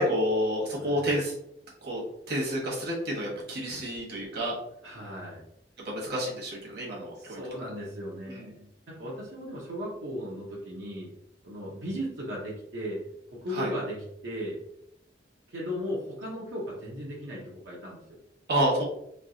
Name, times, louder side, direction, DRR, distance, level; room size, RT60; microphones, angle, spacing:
voice 1, 0.0-1.3 1.8-2.0 2.3-4.5 5.8-7.4 8.3-8.5 13.5-13.7 18.5-18.8, equal, 65° right, -3 dB, 1.2 m, -29 dB
voice 2, 4.8-5.4 7.1-8.7 9.0-11.1 11.4-13.0 13.3-14.0 14.2-14.6 15.5-18.2, equal, 90° right, -5 dB, 0.9 m, -36 dB
3.2 x 2.8 x 2.7 m, 0.76 s
head